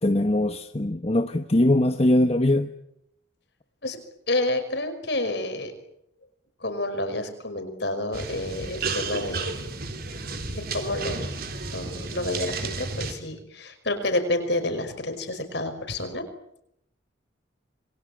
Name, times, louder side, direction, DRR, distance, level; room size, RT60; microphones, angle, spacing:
voice 1, 0.0-2.7, left 1 dB, 30° left, 8 dB, 1.0 m, -21 dB
voice 2, 4.3-5.7 6.6-9.8 10.7-11.4 11.7-16.2, left 1 dB, 60° left, 8 dB, 5.5 m, -29 dB
sound 1, 8.1-13.1, right 3 dB, 50° right, 3.9 m, -32 dB
27.5 x 23.0 x 9.0 m, 0.77 s
head